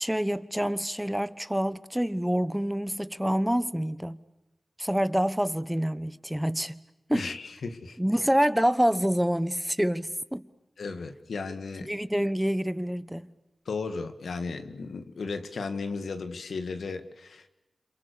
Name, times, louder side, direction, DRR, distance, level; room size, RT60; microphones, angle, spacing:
voice 1, 0.0-4.2 4.8-6.8 7.1-7.3 8.0-10.5 11.9-13.3, equal, 5° right, 1.1 m, -27 dB
voice 2, 7.1-8.0 10.8-11.9 13.7-17.5, left 4 dB, 85° left, 2.0 m, -35 dB
29.5 x 27.5 x 6.9 m
cardioid pair, 60°, 0 cm